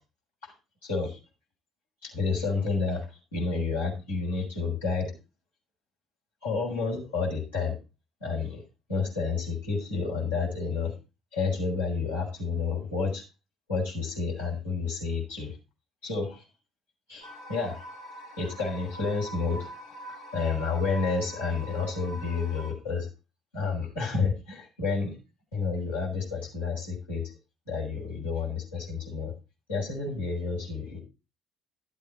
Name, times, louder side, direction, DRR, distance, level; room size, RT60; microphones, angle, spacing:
voice 1, 0.8-1.2 2.0-3.1 3.3-5.1 6.4-7.7 8.2-8.6 8.9-10.9 11.3-13.2 13.7-15.6 16.0-16.4 17.1-17.8 18.4-19.7 20.3-23.1 23.5-25.2 25.5-27.3 27.7-29.3 29.7-31.0, left 4 dB, 80° left, -5 dB, 5.5 m, -30 dB
sound 1, 17.2-22.7, equal, 65° left, 2.0 m, -43 dB
12.5 x 8.4 x 4.1 m, 0.29 s
figure-of-eight pair, 50°, 0 cm